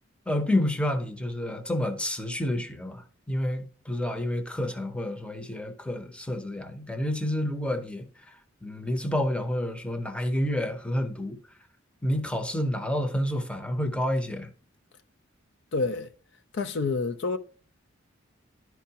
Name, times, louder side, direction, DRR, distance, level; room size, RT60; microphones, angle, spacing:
voice 1, 0.3-8.4 8.6-11.4 12.0-14.5, left 1 dB, 5° left, 0.7 m, -29 dB
voice 2, 15.7-16.1 16.5-17.4, left 3 dB, 60° left, 0.5 m, -28 dB
11.5 x 4.6 x 2.8 m
head